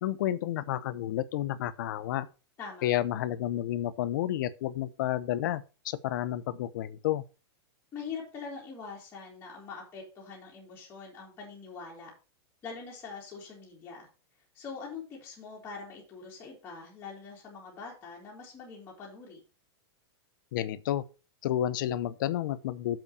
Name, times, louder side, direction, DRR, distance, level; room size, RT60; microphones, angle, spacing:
voice 1, 0.0-2.3 2.8-7.2 20.5-21.0 21.4-23.0, left 12 dB, 50° left, 0.7 m, -31 dB
voice 2, 2.6-2.9 7.9-12.1 12.6-14.1 14.5-19.4, left 5 dB, 15° left, 2.9 m, -43 dB
7.2 x 5.5 x 6.8 m
supercardioid pair, 170°, 14 cm